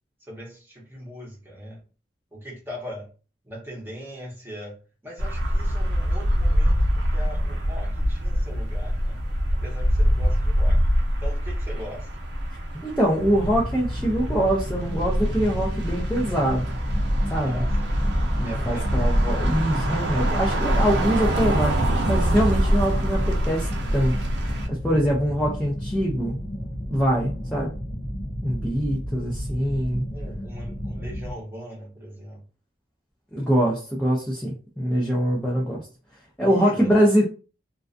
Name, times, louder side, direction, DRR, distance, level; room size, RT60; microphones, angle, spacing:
voice 1, 0.2-1.8 2.3-3.1 3.4-4.8 5.0-9.2 9.6-10.8 11.2-12.1 17.4-18.0 18.4-19.0 30.1-32.4 36.4-36.9, equal, 10° right, -3 dB, 0.8 m, -40 dB
sound 1, 5.2-24.7, equal, 70° right, 0.6 m, -24 dB
voice 2, 12.8-16.7 17.3-17.6 18.4-21.8 22.1-24.2 24.7-26.4 26.9-27.7 28.4-30.0 33.3-35.9 36.4-37.2, equal, 5° left, -4 dB, 0.4 m, -23 dB
sound 2, 13.2-31.3, equal, 60° left, 0.7 m, -33 dB
2.3 x 2.2 x 2.5 m, 0.35 s
head